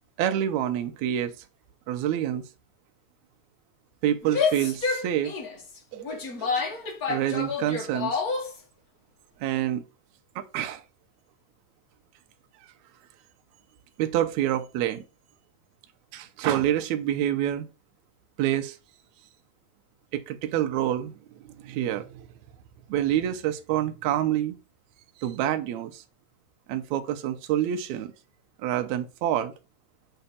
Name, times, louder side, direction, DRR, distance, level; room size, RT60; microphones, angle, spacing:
voice 1, 0.2-1.3 1.9-2.4 4.0-5.3 5.9-6.5 7.1-8.2 9.4-9.8 10.4-10.8 14.0-15.0 16.1-17.7 18.4-18.8 20.1-21.1 21.6-22.3 22.9-24.6 25.2-26.0 26.7-28.1 28.6-29.5, right 11 dB, 80° right, 2.0 m, -27 dB
Female speech woman speaking / Yell, 4.2-8.6, left 5 dB, 50° left, 1.1 m, -29 dB
6.9 x 3.4 x 4.2 m
omnidirectional pair, 3.4 m